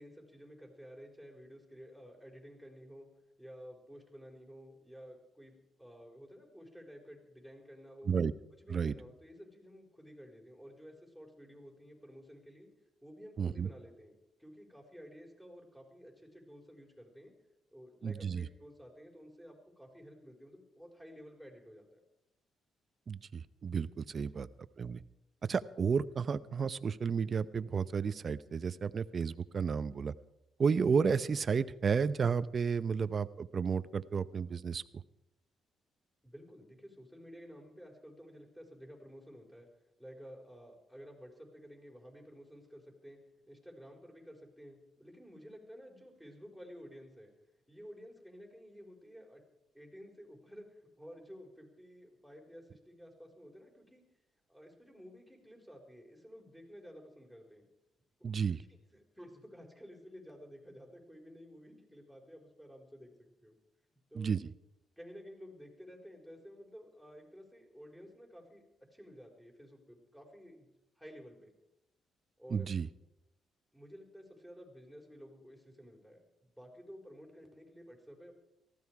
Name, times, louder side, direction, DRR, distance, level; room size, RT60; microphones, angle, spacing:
voice 1, 0.0-3.1 3.4-8.1 8.5-12.7 13.0-17.3 17.7-22.0 36.2-39.7 40.0-43.2 43.5-47.3 47.7-49.4 49.7-54.0 54.5-57.7 58.2-63.1 63.4-63.5 63.9-64.3 65.0-70.7 70.9-71.5 72.4-72.7 73.7-76.2 76.6-78.3, equal, 5° left, 1 dB, 5.0 m, -53 dB
voice 2, 13.4-13.7 18.0-18.4 23.1-24.5 24.8-25.0 25.5-30.1 30.6-34.8 58.2-58.6 64.2-64.5 72.5-72.9, right 6 dB, 45° right, 15 dB, 0.7 m, -32 dB
18.5 x 15.0 x 4.8 m, 0.88 s
cardioid pair, 90°, 0 cm